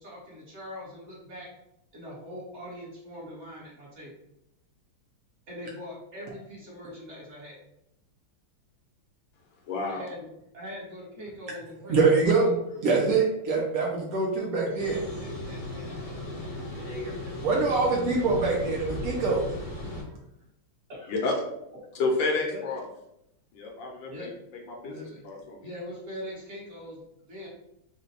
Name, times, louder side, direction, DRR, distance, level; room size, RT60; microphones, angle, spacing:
voice 1, 0.0-1.5 1.9-4.1 5.5-7.6 9.8-10.3 10.5-12.0 12.7-12.8 14.6-16.5 17.7-18.2 20.0-20.1 20.9-21.3 22.4-22.6 24.0-24.3 24.8-25.2 25.6-27.5, equal, 40° right, -5 dB, 1.2 m, -42 dB
voice 2, 9.7-10.1 21.1-21.4 21.9-22.8 23.5-24.3 24.7-24.9 25.2-25.7, left 3 dB, 70° left, 0 dB, 1.4 m, -29 dB
voice 3, 11.9-12.6 12.8-15.0 17.4-19.5, right 4 dB, 75° right, -2 dB, 0.8 m, -24 dB
sound 1, 14.8-20.0, left 1 dB, 45° left, 0.6 m, -36 dB
4.2 x 2.2 x 3.9 m, 0.83 s
omnidirectional pair, 2.3 m